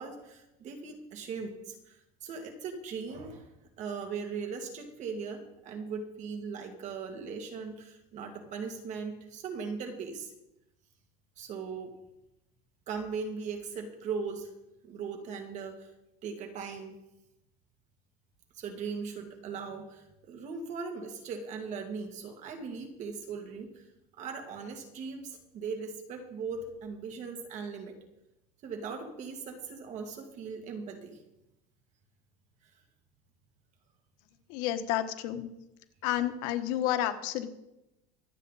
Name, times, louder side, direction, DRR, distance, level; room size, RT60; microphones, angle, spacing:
voice 1, 0.0-3.5 3.8-10.3 11.4-11.9 12.9-14.5 14.8-15.9 16.2-16.9 18.5-23.9 24.2-28.0 28.6-31.2 32.6-32.7, right 5 dB, 40° right, 4 dB, 2.2 m, -39 dB
voice 2, 34.5-35.5 36.0-37.5, left 12 dB, 70° left, 8 dB, 1.3 m, -30 dB
24.5 x 8.2 x 4.1 m, 0.91 s
cardioid pair, 160°, 19 cm